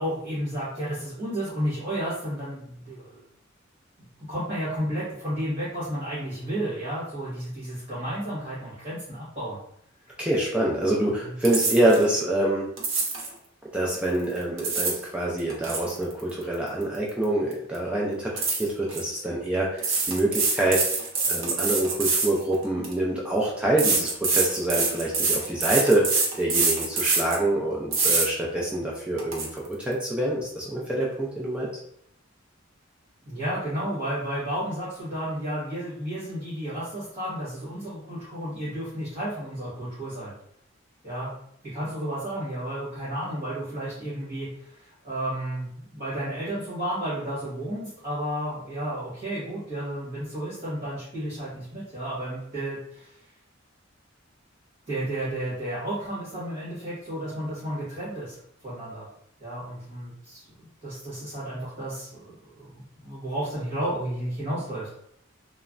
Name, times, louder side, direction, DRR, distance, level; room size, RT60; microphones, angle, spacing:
voice 1, 0.0-3.2 4.3-9.6 10.9-11.3 33.2-40.3 41.0-41.3 41.6-53.1 54.9-59.1 59.4-64.9, right 1 dB, 30° right, -12 dB, 1.3 m, -32 dB
voice 2, 10.2-12.7 13.7-20.8 21.3-31.7, right 1 dB, 5° right, -4 dB, 0.3 m, -26 dB
sound 1, 11.4-12.0 12.8-13.3 14.4-15.0 15.4-17.2 17.5-17.8 18.4-19.0 19.8-22.9 23.8-27.4 27.9-28.3 28.7-28.8 29.2-29.5, right 4 dB, 70° right, 0.7 m, -25 dB
3.3 x 2.0 x 2.4 m, 0.71 s
head